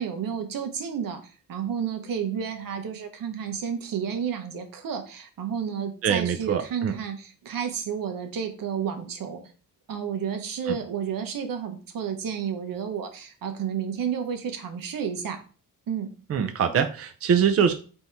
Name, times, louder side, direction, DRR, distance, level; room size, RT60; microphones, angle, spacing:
voice 1, 0.0-9.4 9.9-15.4 15.9-16.1, right 7 dB, 75° right, 5 dB, 0.8 m, -31 dB
voice 2, 6.0-6.9 10.7-10.8 16.3-17.7, right 7 dB, 45° right, 7 dB, 0.4 m, -23 dB
3.5 x 2.7 x 4.3 m, 0.38 s
cardioid pair, 85°, 34 cm